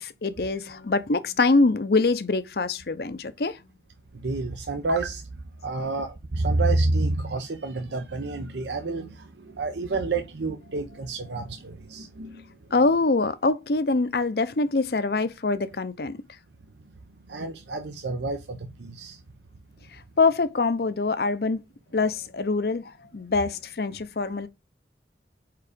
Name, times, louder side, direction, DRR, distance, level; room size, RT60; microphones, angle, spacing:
voice 1, 0.0-3.6 5.7-5.9 12.7-16.2 20.2-21.6 21.9-24.5, left 3 dB, 60° left, 0.6 m, -24 dB
voice 2, 4.2-5.3 5.6-12.4 17.3-19.2, right 2 dB, 80° right, 0.7 m, -29 dB
4.8 x 4.8 x 5.0 m
head